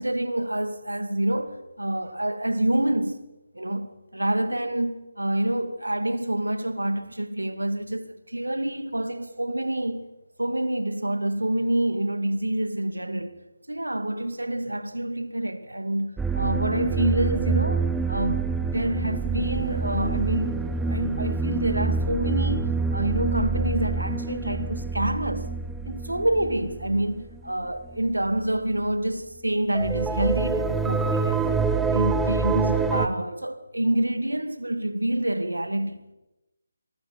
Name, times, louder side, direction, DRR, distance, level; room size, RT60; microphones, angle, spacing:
voice 1, 0.0-3.2 3.5-10.1 10.4-13.3 13.7-25.5 25.9-31.6 31.9-36.0, right 1 dB, 80° right, 2.4 m, -27 dB
sound 1, 16.2-27.5 27.8-28.0 28.2-28.4 29.7-33.1, right 4 dB, 5° right, 1.1 m, -26 dB
27.5 x 23.5 x 5.3 m
figure-of-eight pair, 150°, 0 cm